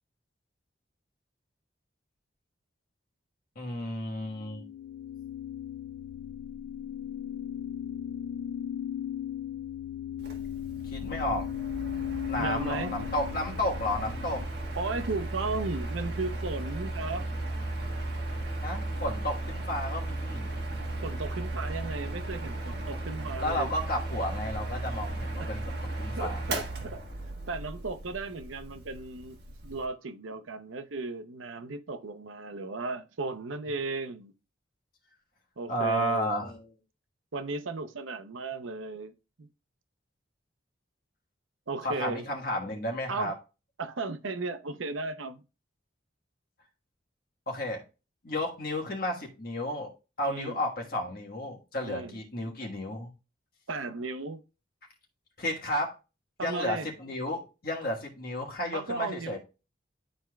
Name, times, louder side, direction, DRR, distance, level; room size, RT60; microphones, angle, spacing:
voice 1, 3.5-4.6 10.9-11.5 12.3-14.4 18.6-20.5 23.4-26.4 35.7-36.8 41.8-43.3 47.5-47.8 48.2-49.9 50.2-53.1 55.4-55.9 56.4-59.4, left 1 dB, 50° left, 1.5 m, -32 dB
sound 1, 4.3-14.4, left 10 dB, 80° left, 0.3 m, -37 dB
Mechanical fan, 10.2-29.8, right 2 dB, 55° right, 1.4 m, -36 dB
voice 2, 12.4-12.9 14.8-17.3 21.0-23.7 25.4-25.5 26.2-27.0 27.5-29.4 29.6-34.3 35.6-36.3 37.3-39.1 39.4-39.5 41.7-42.2 43.1-43.4 43.8-45.4 50.3-50.6 51.8-52.2 53.7-54.4 56.4-56.9 58.7-59.4, right 3 dB, 90° right, 0.7 m, -35 dB
11.5 x 4.3 x 2.3 m
head